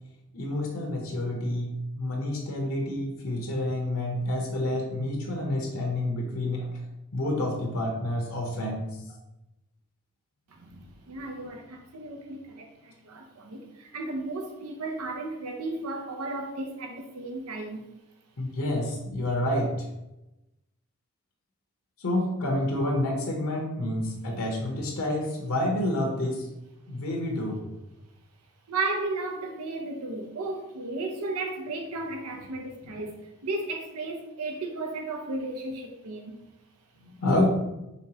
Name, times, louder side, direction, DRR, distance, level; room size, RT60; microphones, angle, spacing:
voice 1, 0.3-6.7 7.1-8.9 18.4-19.9 22.0-26.5 26.9-27.6 37.0-37.5, left 1 dB, 65° left, 0.8 m, -28 dB
voice 2, 10.5-17.8 28.7-33.1 33.4-36.4, right 2 dB, 85° right, 0.7 m, -34 dB
5.1 x 3.4 x 2.8 m
head